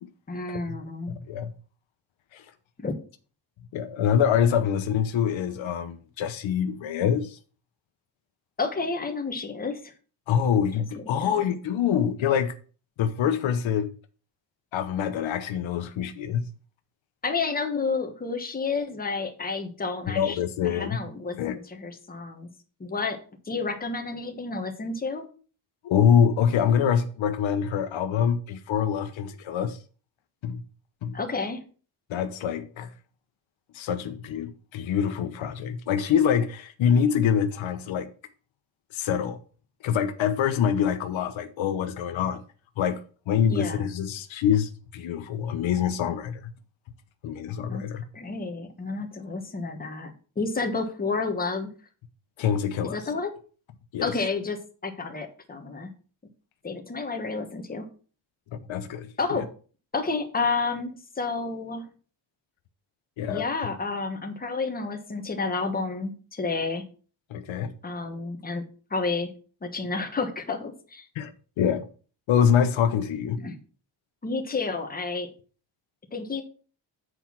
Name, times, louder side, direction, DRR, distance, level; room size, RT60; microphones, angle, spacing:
voice 1, 0.3-1.1 2.8-3.0 8.6-9.9 10.9-11.3 17.2-20.4 20.6-22.5 22.8-23.2 23.5-25.3 31.1-31.6 43.4-43.9 47.7-47.8 48.1-51.7 52.8-53.3 54.0-55.9 56.6-57.9 59.2-59.5 59.9-61.8 63.3-66.8 67.8-68.6 68.9-69.3 69.6-71.0 73.4-73.6 74.2-75.3 76.1-76.4, left 4 dB, 20° left, 1.3 m, -30 dB
voice 2, 1.1-1.5 2.3-2.4 3.7-7.4 10.3-12.5 13.0-13.9 14.7-16.4 20.1-21.0 21.3-21.6 25.8-29.8 30.4-30.6 31.0-31.2 32.1-32.9 33.7-38.1 38.9-39.4 39.8-42.4 42.8-46.5 47.2-48.0 52.4-53.0 53.9-54.1 58.5-59.4 63.2-63.5 67.3-67.7 71.2-71.3 71.6-71.9 72.3-73.4, left 8 dB, 80° left, 1.0 m, -25 dB
8.0 x 4.5 x 5.8 m
wide cardioid pair, 150°, 46 cm